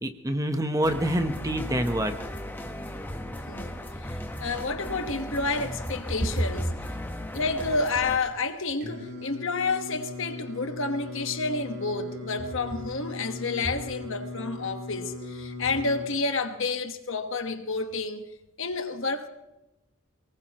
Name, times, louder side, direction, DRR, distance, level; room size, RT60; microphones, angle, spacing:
voice 1, 0.0-2.1, right 1 dB, 15° right, 0.9 m, -26 dB
sound 1, 0.8-8.2, left 1 dB, 10° left, 1.1 m, -37 dB
voice 2, 4.0-6.7 7.3-19.3, left 3 dB, 60° left, 1.3 m, -30 dB
Singing, 8.8-16.0, left 2 dB, 50° right, 3.2 m, -38 dB
22.5 x 19.5 x 3.0 m
head